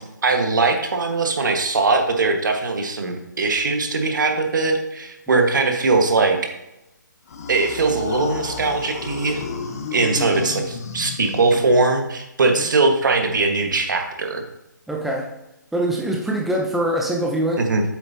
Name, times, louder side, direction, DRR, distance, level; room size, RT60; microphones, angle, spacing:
voice 1, 0.2-6.4 7.5-9.4 9.9-14.4 17.6-17.8, right 3 dB, 70° right, 4 dB, 1.5 m, -20 dB
sound 1, 7.3-12.1, left 4 dB, 50° left, 1.0 m, -32 dB
voice 2, 14.9-15.3 15.7-17.6, right 1 dB, ahead, -2 dB, 0.6 m, -23 dB
8.2 x 6.9 x 2.8 m, 0.90 s
hypercardioid pair, 150°, 11 cm